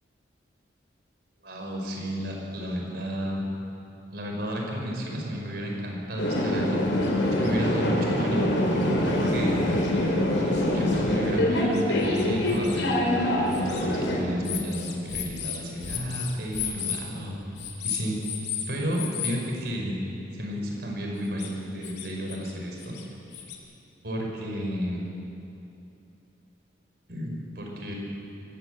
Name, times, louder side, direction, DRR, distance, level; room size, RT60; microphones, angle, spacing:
voice 1, 1.4-3.4 4.1-6.8 7.3-9.8 10.7-17.4 17.8-18.2 18.7-20.0 20.3-23.0 24.0-25.0 27.1-28.0, equal, 55° right, 0 dB, 5.0 m, -32 dB
sound 1, 6.2-14.2, left 1 dB, 85° left, 5.1 m, -24 dB
sound 2, 7.0-7.1 7.4-7.5 8.4-8.5 8.8-8.9 9.5-9.6 10.5-10.6 10.9-11.0 11.7-12.8 13.5-13.9 14.4-17.0 17.6-18.7 18.9-19.4 21.2-21.5 21.8-22.5 22.8-23.6, left 10 dB, 60° left, 3.0 m, -34 dB
24.5 x 17.0 x 8.0 m, 2.8 s
head